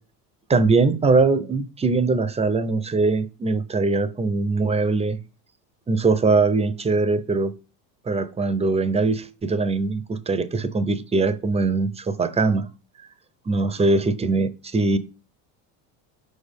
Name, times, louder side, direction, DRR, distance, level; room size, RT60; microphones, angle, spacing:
voice 1, 0.5-5.2 5.9-7.5 8.1-12.7 13.5-15.0, right 3 dB, 15° right, 0.5 m, -21 dB
4.6 x 4.3 x 5.2 m
hypercardioid pair, 90°, 46 cm